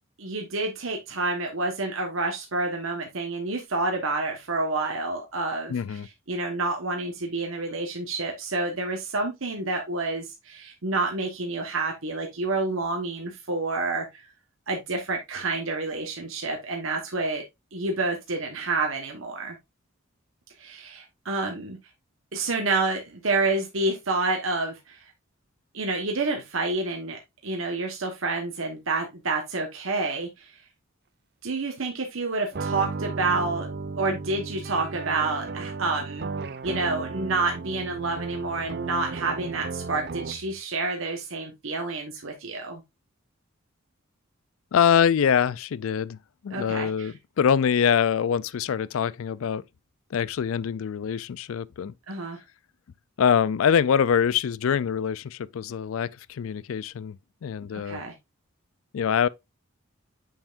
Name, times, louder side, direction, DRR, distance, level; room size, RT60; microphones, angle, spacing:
voice 1, 0.2-6.0 6.3-14.1 14.7-17.4 17.7-19.5 20.6-21.8 22.3-25.0 25.7-30.5 31.4-33.7 34.0-36.3 36.6-42.8 46.5-47.1 52.1-52.4 57.7-58.1, right 3 dB, 70° right, 1.2 m, -28 dB
voice 2, 5.7-6.1 44.7-46.2 46.4-49.6 50.1-51.9 53.2-58.0 58.9-59.3, left 7 dB, 75° left, 0.4 m, -24 dB
sound 1, 32.5-40.6, right 4 dB, 50° right, 0.5 m, -34 dB
7.1 x 5.6 x 2.5 m
head